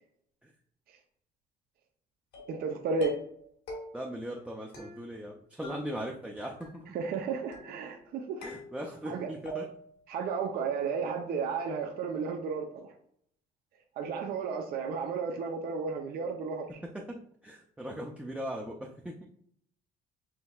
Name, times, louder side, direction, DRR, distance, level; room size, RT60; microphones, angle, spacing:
sound 1, 2.3-2.7 3.0-3.4 3.7-4.2 4.7-5.3 5.6-6.3 6.6-7.1 7.5-8.0 8.4-9.1 9.5-10.0, equal, 80° left, 1.6 m, -44 dB
voice 1, 2.5-3.2 6.9-8.4 9.1-9.3 10.1-12.9 14.0-16.7, right 5 dB, 60° right, 2 dB, 0.6 m, -33 dB
voice 2, 3.9-6.9 8.4-9.7 16.9-19.3, equal, 5° right, -1 dB, 0.5 m, -39 dB
6.0 x 3.2 x 2.3 m, 0.67 s
cardioid pair, 110°, 17 cm